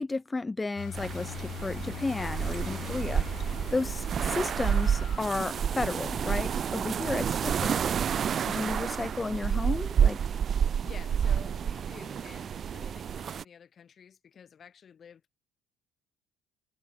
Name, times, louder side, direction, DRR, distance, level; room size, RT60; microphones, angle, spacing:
voice 1, 0.0-3.2 3.7-4.1 4.3-7.8 8.5-10.2, left 3 dB, 20° left, 0.8 m, -33 dB
sound 1, 0.8-6.5, left 12 dB, 60° left, 1.2 m, -42 dB
sound 2, 0.9-13.4, right 8 dB, 45° right, 0.4 m, -29 dB
voice 2, 10.5-15.4, left 7 dB, 45° left, 4.2 m, -51 dB
supercardioid pair, 90°, 0 cm